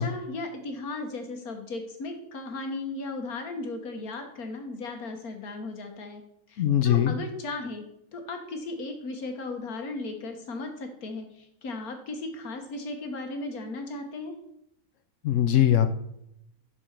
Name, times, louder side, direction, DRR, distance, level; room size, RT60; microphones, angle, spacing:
voice 1, 0.0-6.2 6.5-7.8 8.1-14.3, left 3 dB, 85° left, 5 dB, 1.7 m, -36 dB
voice 2, 6.6-7.1 15.2-15.9, left 10 dB, 65° left, 10 dB, 0.9 m, -21 dB
6.4 x 6.1 x 4.6 m, 0.77 s
omnidirectional pair, 1.5 m